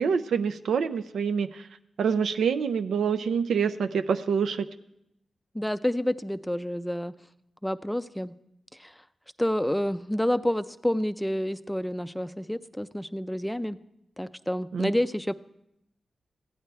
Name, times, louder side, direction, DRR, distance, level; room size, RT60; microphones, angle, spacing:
voice 1, 0.0-1.6 2.0-4.6 14.7-14.9, right 6 dB, 85° right, 10 dB, 0.3 m, -26 dB
voice 2, 5.5-7.1 7.6-8.3 8.8-8.9 9.4-13.8 14.2-15.3, equal, 5° left, 13 dB, 0.4 m, -29 dB
15.0 x 8.9 x 3.3 m, 0.79 s
cardioid pair, 45°, 0 cm